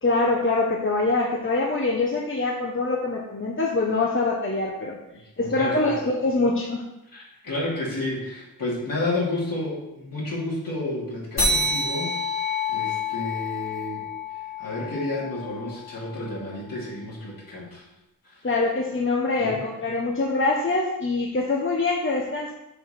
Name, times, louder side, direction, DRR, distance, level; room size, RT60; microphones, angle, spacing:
voice 1, 0.0-5.0 5.4-6.8 18.4-22.5, left 3 dB, 35° left, -2 dB, 1.0 m, -24 dB
voice 2, 5.4-6.0 7.1-12.2 12.7-14.0 14.3-17.8 18.2-18.5 19.4-19.5, left 2 dB, 60° left, -5 dB, 3.2 m, -31 dB
sound 1, 11.4-16.3, left 2 dB, 80° left, 3.2 m, -28 dB
6.6 x 5.0 x 5.8 m, 0.92 s
wide cardioid pair, 85°, 37 cm